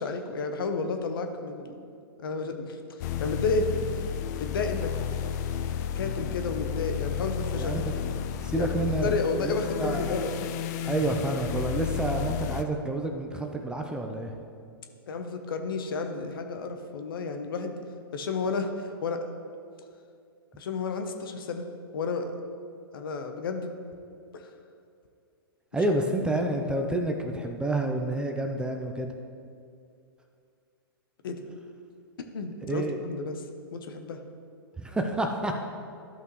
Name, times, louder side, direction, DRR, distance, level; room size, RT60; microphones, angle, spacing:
voice 1, 0.0-1.8 2.2-3.7 4.3-5.4 5.9-7.7 8.6-8.7 9.0-10.5 15.1-17.7 18.1-19.3 20.6-21.7 21.9-22.3 22.9-23.7 24.3-24.5 31.2-31.4 32.3-33.4 33.7-34.2, left 4 dB, 65° left, 6 dB, 0.8 m, -31 dB
sound 1, 3.0-12.6, left 9 dB, 45° left, 0.5 m, -32 dB
voice 2, 7.5-7.9 8.3-10.3 10.9-14.3 25.7-29.1 32.6-33.0 34.8-35.5, right 2 dB, 5° right, 3 dB, 0.5 m, -29 dB
12.5 x 5.6 x 3.1 m, 2.4 s
hypercardioid pair, 125°, 13 cm